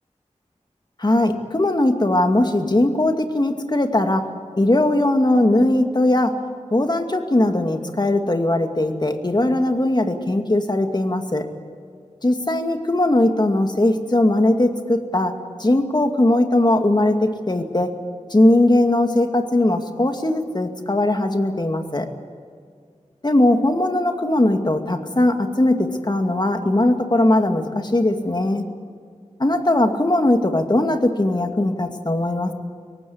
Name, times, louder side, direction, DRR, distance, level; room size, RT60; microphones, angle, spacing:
voice 1, 1.0-4.3 4.6-6.3 6.7-11.4 12.2-17.9 18.3-22.1 23.2-28.6 29.4-32.5, left 1 dB, 35° left, 6 dB, 2.3 m, -19 dB
23.5 x 19.0 x 8.6 m, 2.1 s
wide cardioid pair, 60°, 12 cm